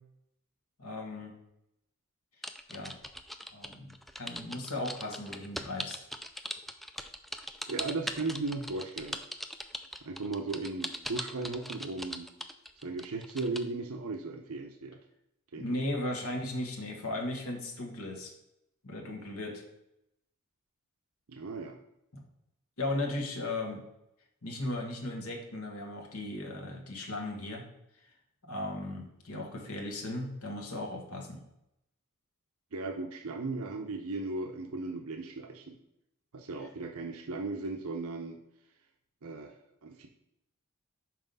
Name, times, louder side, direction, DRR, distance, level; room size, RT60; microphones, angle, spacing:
voice 1, 0.8-1.3 2.7-3.0 3.5-6.0 15.6-18.3 18.8-19.6 22.1-22.2 22.8-23.8 24.4-27.6 28.5-31.4, left 1 dB, 70° left, 1 dB, 1.6 m, -36 dB
sound 1, 2.4-13.6, equal, ahead, 0.3 m, -39 dB
voice 2, 7.7-9.2 10.0-12.3 12.8-15.0 15.5-15.6 21.3-21.8 32.7-35.8 36.3-38.4 39.2-40.1, right 3 dB, 75° right, 4 dB, 0.7 m, -36 dB
5.9 x 4.8 x 5.4 m, 0.83 s
head